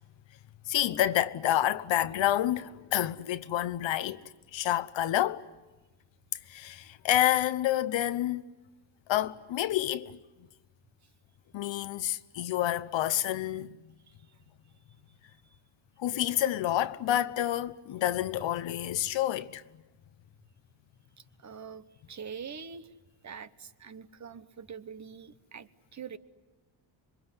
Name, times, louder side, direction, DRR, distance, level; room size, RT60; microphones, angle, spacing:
voice 1, 0.7-4.2 4.5-5.5 6.5-8.4 9.1-10.2 11.5-13.8 16.0-19.6, left 12 dB, 70° left, 1.0 m, -28 dB
voice 2, 21.4-22.9 23.2-26.2, right 6 dB, 35° right, 1.1 m, -44 dB
26.5 x 23.0 x 9.7 m
cardioid pair, 125°, 47 cm